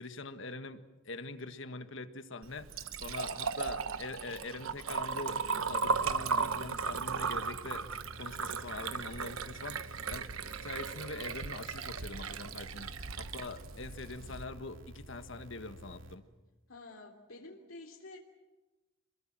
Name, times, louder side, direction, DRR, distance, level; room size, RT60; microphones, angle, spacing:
voice 1, 0.0-5.4 5.6-16.2, left 3 dB, 65° left, 9 dB, 1.6 m, -44 dB
Liquid, 2.4-14.4, right 5 dB, 85° right, 1.0 m, -36 dB
sound 1, 5.7-16.1, equal, 65° right, 2.8 m, -51 dB
voice 2, 16.7-18.2, left 2 dB, 80° left, 1 dB, 3.1 m, -49 dB
27.5 x 22.0 x 7.6 m, 1.1 s
head